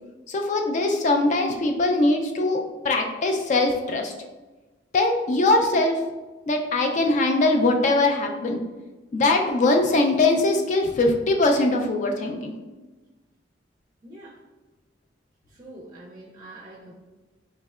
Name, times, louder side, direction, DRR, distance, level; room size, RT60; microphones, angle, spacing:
voice 1, 0.3-4.1 4.9-6.0 6.5-8.6 9.1-12.5, left 2 dB, 40° left, 3 dB, 0.3 m, -21 dB
voice 2, 14.0-14.4 15.5-16.9, right 1 dB, 25° right, -3 dB, 0.5 m, -44 dB
3.5 x 3.1 x 2.3 m, 1.2 s
head